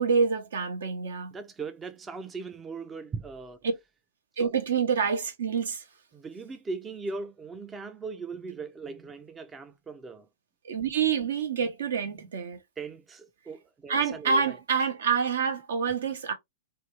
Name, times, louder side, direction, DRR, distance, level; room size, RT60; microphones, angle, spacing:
voice 1, 0.0-1.3 4.4-5.8 10.7-12.6 13.9-16.3, right 6 dB, 70° right, 0.7 m, -27 dB
voice 2, 1.3-3.6 4.4-4.5 6.1-10.3 11.6-11.7 12.1-12.3 12.8-14.6, right 4 dB, 15° right, 0.3 m, -39 dB
2.6 x 2.3 x 3.0 m
hypercardioid pair, 110°, 0 cm